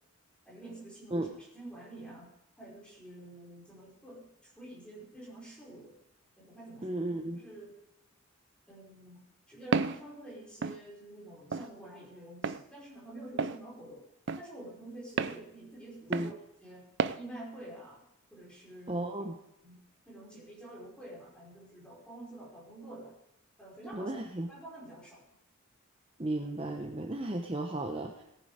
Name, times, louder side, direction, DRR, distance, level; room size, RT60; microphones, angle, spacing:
voice 1, 0.5-1.2 1.5-2.3 2.6-4.3 4.6-5.9 6.4-7.0 7.4-7.7 8.7-9.2 9.5-14.1 14.4-16.3 16.6-16.9 17.1-18.0 18.3-19.1 19.6-19.8 20.1-23.2 23.6-24.2 24.5-25.2, right 1 dB, 5° left, -5 dB, 5.2 m, -48 dB
voice 2, 6.8-7.4 16.1-16.3 18.9-19.4 23.9-24.5 26.2-28.2, right 1 dB, 25° right, 3 dB, 0.8 m, -34 dB
Walk footsteps, 9.7-10.0 10.6-10.8 11.5-11.7 12.4-12.6 13.4-13.6 14.3-14.4 15.2-15.4 16.1-16.3 17.0-17.2, right 4 dB, 55° right, 0.5 m, -30 dB
18.0 x 9.4 x 5.1 m, 0.81 s
head